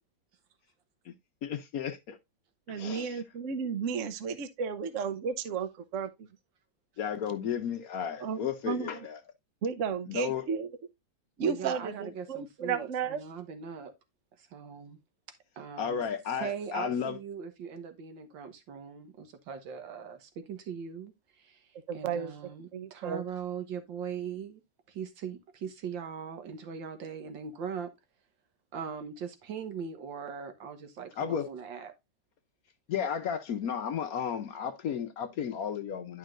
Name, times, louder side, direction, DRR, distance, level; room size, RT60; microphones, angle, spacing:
voice 1, 1.4-2.2 2.7-3.2 7.0-9.2 10.1-10.5 15.8-17.2 31.2-31.5 32.9-36.2, left 8 dB, 65° left, 1.0 m, -33 dB
voice 2, 2.7-6.3 8.2-8.9 9.6-10.7 11.4-13.2 21.9-23.2, right 6 dB, 55° right, 0.9 m, -33 dB
voice 3, 11.4-13.9 14.4-15.0 15.6-16.0 16.4-24.6 24.9-27.9 28.7-31.9, right 7 dB, 80° right, 1.9 m, -40 dB
11.0 x 5.5 x 2.4 m
omnidirectional pair, 2.0 m